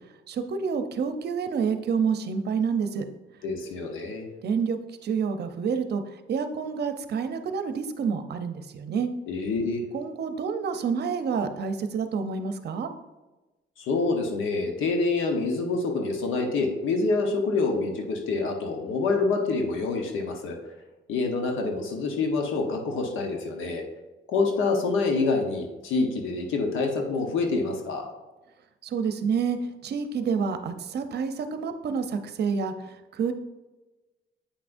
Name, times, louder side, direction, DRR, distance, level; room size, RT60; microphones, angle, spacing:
voice 1, 0.3-3.0 4.4-4.8 5.0-6.0 6.3-9.1 9.9-12.9 28.8-33.3, right 6 dB, 55° right, 8 dB, 0.7 m, -28 dB
voice 2, 3.4-4.3 9.3-9.8 13.8-20.6 21.1-23.8 24.3-28.1, left 3 dB, 80° left, 3 dB, 1.1 m, -26 dB
8.4 x 5.9 x 2.6 m, 1.1 s
cardioid pair, 90°, 20 cm